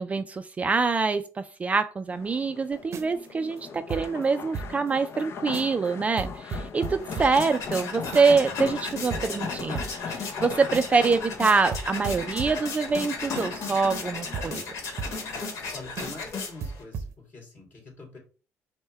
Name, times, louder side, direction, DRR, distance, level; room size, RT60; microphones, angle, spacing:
voice 1, 0.0-14.6, right 4 dB, 25° right, 9 dB, 0.3 m, -25 dB
sound 1, 2.1-15.8, left 6 dB, 50° left, 0.5 m, -39 dB
sound 2, 2.8-4.9 5.2-5.3 5.5-5.9 6.2-8.5 8.8-8.9 9.1-11.1 11.4-11.5 11.7-15.7 16.0-16.3 16.6-17.1, right 5 dB, 55° right, 0.6 m, -38 dB
sound 3, 6.8-16.8, left 4 dB, 70° left, 1.2 m, -36 dB
voice 2, 15.7-18.2, left 2 dB, 35° left, 0 dB, 2.7 m, -44 dB
5.4 x 2.2 x 4.5 m, 0.36 s
cardioid pair, 100°, 5 cm